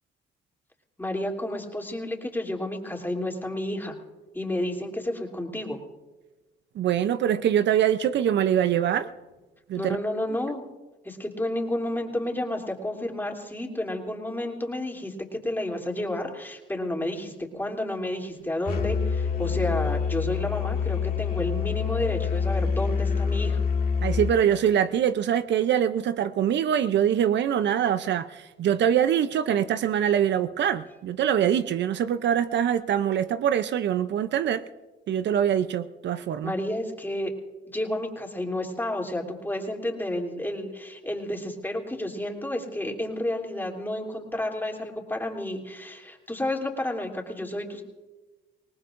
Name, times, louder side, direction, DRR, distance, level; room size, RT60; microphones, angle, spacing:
voice 1, 1.0-4.0 4.3-5.8 9.8-10.6 11.0-23.6 36.4-37.3 37.7-47.8, left 1 dB, 10° left, 0 dB, 3.1 m, -31 dB
voice 2, 6.8-9.1 9.7-10.0 24.0-34.6 35.1-36.5, right 9 dB, 65° right, 12 dB, 0.6 m, -24 dB
Musical instrument, 18.7-24.3, left 6 dB, 50° left, 2.1 m, -26 dB
25.5 x 19.5 x 2.6 m, 1.2 s
cardioid pair, 90°, 20 cm